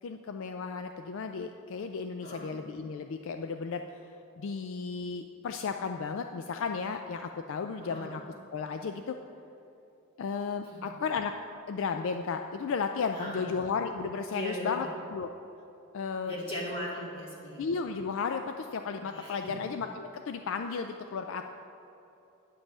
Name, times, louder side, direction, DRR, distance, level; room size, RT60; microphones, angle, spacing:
voice 1, 0.0-4.0 4.4-8.2 8.5-9.2 10.2-11.3 11.7-15.3 15.9-16.3 17.6-21.5, left 5 dB, 60° left, 6 dB, 0.4 m, -34 dB
voice 2, 13.1-13.6 14.3-14.9 16.3-17.6 19.0-19.5, left 1 dB, 25° left, -5 dB, 2.2 m, -38 dB
10.0 x 5.3 x 7.2 m, 3.0 s
head